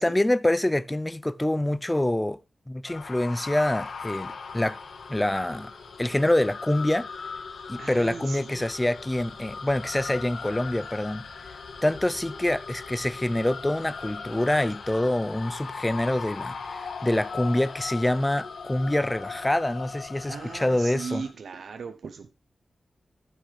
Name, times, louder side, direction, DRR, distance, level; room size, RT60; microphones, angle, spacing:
voice 1, 0.0-2.4 2.7-4.8 5.1-5.7 6.0-7.1 7.7-11.2 11.8-21.2, left 1 dB, 10° left, 0.4 m, -26 dB
sound 1, 2.9-21.3, left 5 dB, 70° left, 1.4 m, -39 dB
voice 2, 7.8-8.7 20.3-22.3, right 5 dB, 75° right, 0.8 m, -38 dB
14.5 x 6.1 x 3.4 m
wide cardioid pair, 160°, 0 cm